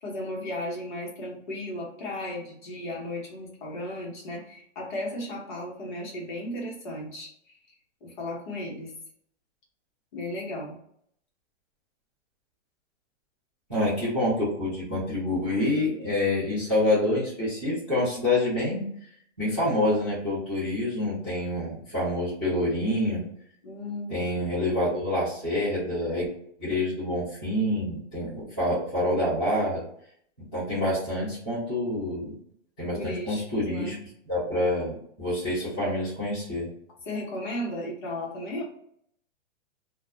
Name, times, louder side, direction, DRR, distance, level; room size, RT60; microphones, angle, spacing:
voice 1, 0.0-7.6 8.0-8.9 10.1-10.8 23.6-24.5 32.9-34.0 37.0-38.6, left 1 dB, 40° left, -2 dB, 0.9 m, -35 dB
voice 2, 13.7-18.9 19.4-23.2 24.1-26.3 26.6-29.8 30.4-32.3 32.8-33.9 34.3-36.7, left 1 dB, 10° right, -19 dB, 0.3 m, -27 dB
2.3 x 2.2 x 2.8 m, 0.67 s
hypercardioid pair, 170°, 37 cm